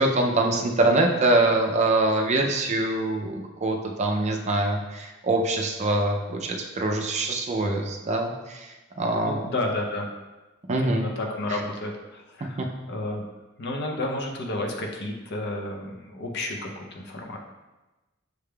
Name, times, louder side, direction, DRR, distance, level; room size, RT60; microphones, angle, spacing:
voice 1, 0.0-8.7 9.0-9.5 10.7-11.0 12.6-12.7, right 2 dB, 35° right, 2 dB, 0.4 m, -24 dB
voice 2, 9.2-10.1 10.8-13.2 13.6-17.4, left 1 dB, 55° left, 1 dB, 0.6 m, -31 dB
6.4 x 3.4 x 2.3 m, 1.1 s
head